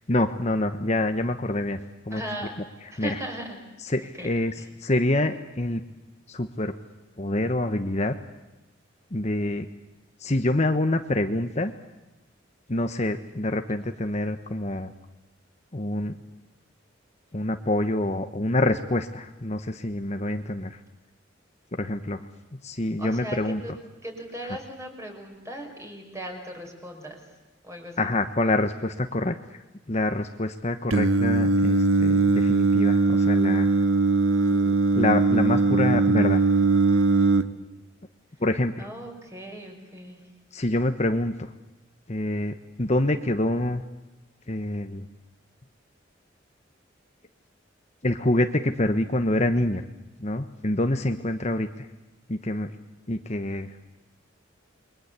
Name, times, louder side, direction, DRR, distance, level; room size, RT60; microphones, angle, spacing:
voice 1, 0.1-1.8 2.0-2.2 3.0-3.2 3.8-4.5 4.8-5.8 6.3-6.7 7.2-8.2 9.1-9.7 10.2-11.7 12.7-14.9 15.7-16.2 17.3-20.8 21.7-23.6 28.0-33.7 34.5-36.4 38.4-38.9 40.5-41.5 42.1-43.8 44.5-45.1 48.0-49.8 50.2-51.9 52.3-52.7 53.1-53.8, left 1 dB, 35° left, 7 dB, 1.1 m, -26 dB
voice 2, 2.1-2.6 2.9-3.6 4.0-4.3 4.6-4.7 23.0-23.7 24.0-27.2 27.6-28.0 38.8-40.2, right 1 dB, 15° right, 3 dB, 5.7 m, -38 dB
Singing, 30.9-37.4, right 3 dB, 85° right, 1.5 m, -20 dB
29.0 x 22.5 x 8.3 m, 1.1 s
head